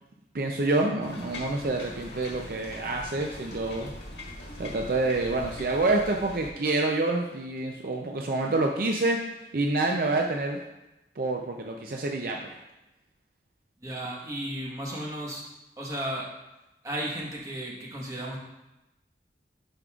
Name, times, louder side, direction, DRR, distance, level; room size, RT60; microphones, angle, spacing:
voice 1, 0.3-3.9 4.6-9.2 9.5-10.6 11.2-12.6, right 2 dB, 55° right, 1 dB, 0.5 m, -27 dB
sound 1, 1.0-6.5, left 1 dB, 80° left, 1.6 m, -42 dB
voice 2, 13.8-15.4 15.8-16.3 16.8-18.4, right 1 dB, 20° right, -3 dB, 1.2 m, -34 dB
11.0 x 5.3 x 2.4 m, 0.97 s
head